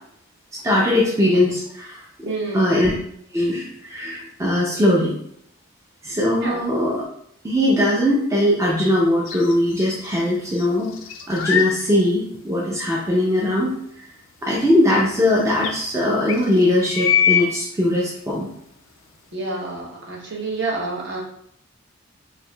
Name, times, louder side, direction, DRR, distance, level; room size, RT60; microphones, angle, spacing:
voice 1, 0.5-2.9 3.3-5.2 6.0-7.1 7.4-10.9 11.3-14.1 14.4-18.5, left 1 dB, 15° right, -4 dB, 0.4 m, -20 dB
voice 2, 2.2-2.7 6.4-6.6 19.3-21.2, right 3 dB, 55° right, -3 dB, 0.9 m, -28 dB
sound 1, 9.3-10.2 10.5-11.8 12.3-12.4 14.6-14.7 14.9-15.0 15.6-15.7 16.3-17.5, left 8 dB, 65° left, 0.4 m, -22 dB
4.5 x 2.5 x 2.3 m, 0.70 s
head